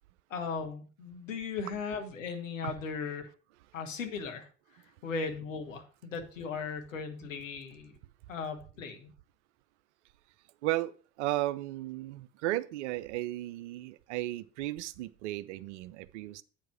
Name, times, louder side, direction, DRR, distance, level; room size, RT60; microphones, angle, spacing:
voice 1, 0.3-3.3 3.7-4.5 5.0-8.0 8.3-9.1, left 5 dB, 75° left, 1.3 m, -37 dB
voice 2, 11.2-16.4, right 16 dB, 65° right, 0.5 m, -34 dB
8.8 x 4.7 x 5.9 m
figure-of-eight pair, 60°, 39 cm